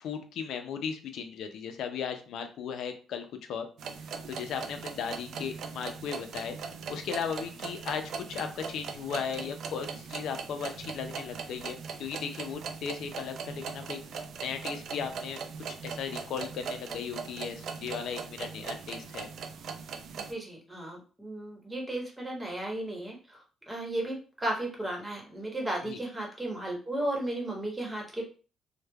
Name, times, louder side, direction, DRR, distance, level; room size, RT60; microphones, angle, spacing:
voice 1, 0.0-3.7 4.3-6.6 6.9-8.0 8.3-15.4 15.7-19.3 25.9-26.0, left 7 dB, 75° left, 6 dB, 0.4 m, -36 dB
sound 1, 3.8-20.3, right 5 dB, 70° right, 0.3 m, -40 dB
voice 2, 20.2-28.3, right 1 dB, 15° right, -1 dB, 1.0 m, -35 dB
3.1 x 2.1 x 2.2 m, 0.37 s
cardioid pair, 90°, 0 cm